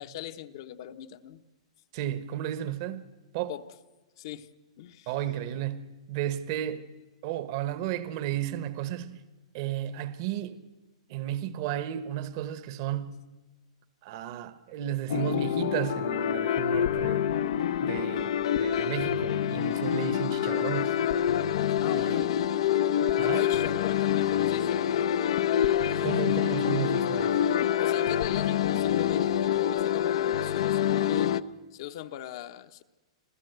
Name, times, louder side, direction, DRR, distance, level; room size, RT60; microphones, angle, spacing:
voice 1, 0.0-1.4 3.5-3.6 4.2-4.5 4.8-5.1 21.8-22.3 23.2-25.4 25.9-26.3 27.8-31.3 31.7-32.8, left 13 dB, 50° left, 1.0 m, -40 dB
voice 2, 1.9-3.1 3.3-3.5 5.1-6.8 7.2-9.2 9.5-10.6 11.1-13.3 14.0-17.3 17.8-21.0 21.9-22.4 23.2-23.5 25.9-27.4, right 11 dB, 40° right, 1.1 m, -33 dB
sound 1, 15.1-31.4, left 10 dB, 65° left, 0.6 m, -26 dB
27.0 x 15.0 x 8.0 m
hypercardioid pair, 160°, 3 cm